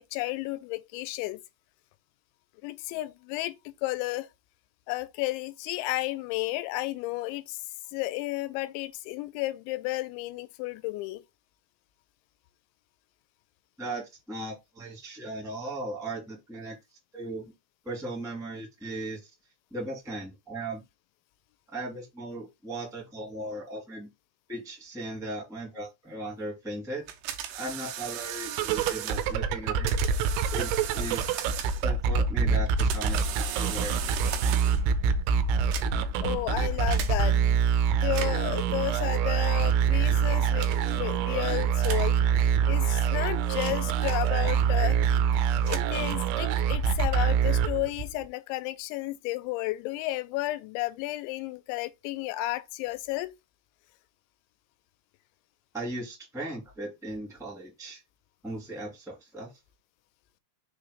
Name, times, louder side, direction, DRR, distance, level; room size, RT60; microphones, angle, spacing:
voice 1, 0.0-1.4 2.6-4.3 4.9-7.6 7.9-11.2 36.2-37.6 38.0-42.2 42.7-45.0 45.6-53.3, left 18 dB, 85° left, 2.9 m, -32 dB
voice 2, 13.8-16.7 17.1-17.4 17.8-19.2 19.7-20.8 21.7-24.1 24.5-29.9 30.5-31.2 31.8-34.0 55.7-58.0 58.4-59.5, right 1 dB, ahead, 0.8 m, -37 dB
sound 1, 27.1-29.3 29.9-32.0 32.6-34.9 35.6-36.2 36.9-37.1 38.0-38.5 39.4-39.8 40.6-41.0 41.8-42.1 42.9-44.7 45.4-46.5, right 10 dB, 75° right, 2.5 m, -37 dB
sound 2, 28.5-48.2, right 7 dB, 90° right, 3.0 m, -25 dB
6.7 x 3.0 x 4.9 m
omnidirectional pair, 5.3 m